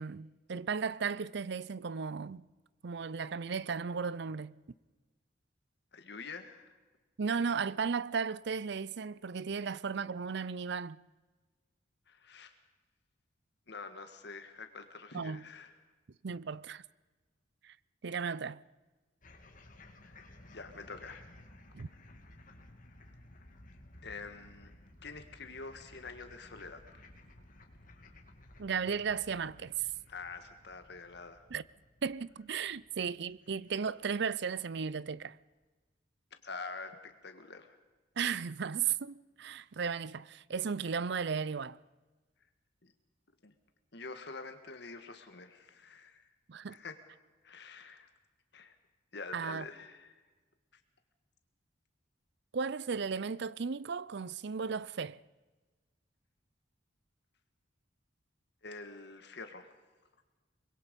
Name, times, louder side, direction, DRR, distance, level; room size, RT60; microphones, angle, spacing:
voice 1, 0.0-2.5 2.8-4.6 7.2-11.0 15.1-15.4 16.2-16.8 17.6-17.7 18.0-18.6 21.7-21.9 28.6-29.9 31.5-31.6 32.0-35.4 38.2-41.8 46.5-46.8 49.3-49.7 52.5-55.2, right 6 dB, 60° right, 0.5 m, -35 dB
voice 2, 5.9-6.7 12.1-12.5 13.7-15.7 20.0-20.2 20.5-21.3 24.0-24.7 25.0-27.0 30.1-31.4 36.4-37.7 42.8-42.9 43.4-43.5 43.9-46.3 46.7-47.0 47.4-48.1 48.5-48.8 49.1-50.2 58.6-59.7, left 4 dB, 60° left, 1.6 m, -46 dB
sound 1, 19.2-34.6, left 1 dB, 45° left, 2.4 m, -57 dB
24.0 x 21.5 x 5.3 m
head